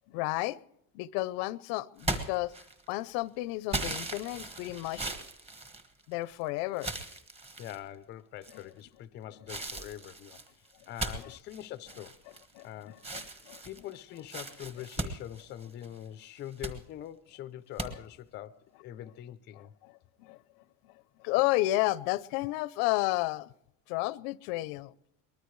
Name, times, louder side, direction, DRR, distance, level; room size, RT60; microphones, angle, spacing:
voice 1, 0.1-0.6 0.9-2.5 2.9-5.1 6.1-6.9 11.2-11.3 12.5-13.6 19.8-20.4 21.2-23.5 23.9-24.9, left 18 dB, 85° left, 0.7 m, -32 dB
sound 1, 2.0-3.0 3.7-6.3 6.8-7.8 8.4-8.9 9.5-12.7 13.0-16.0 16.4-16.8 17.8-17.9, right 2 dB, 15° right, 1.3 m, -38 dB
voice 2, 7.6-12.2 12.6-13.0 13.6-19.7, left 12 dB, 30° left, 0.5 m, -44 dB
23.0 x 20.0 x 3.2 m
cardioid pair, 180°, 35 cm